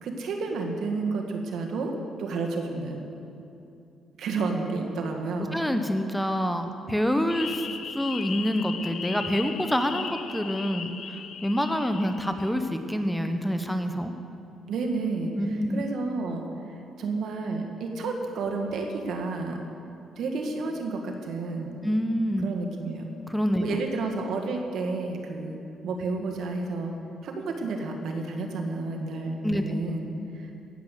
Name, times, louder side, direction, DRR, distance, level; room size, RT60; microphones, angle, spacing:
voice 1, 0.0-3.1 4.2-5.6 14.7-15.3 15.7-19.6 20.2-21.8 22.4-23.1 23.6-25.6 25.8-26.9 27.2-30.5, right 3 dB, 70° right, 2 dB, 1.8 m, -31 dB
voice 2, 5.5-7.7 7.9-14.1 15.4-15.8 21.8-22.5 23.3-23.8 29.4-29.8, equal, 5° left, 7 dB, 0.9 m, -27 dB
sound 1, 7.3-12.5, left 6 dB, 60° left, 0.9 m, -37 dB
17.0 x 8.0 x 6.6 m, 2.7 s
cardioid pair, 90°, 0 cm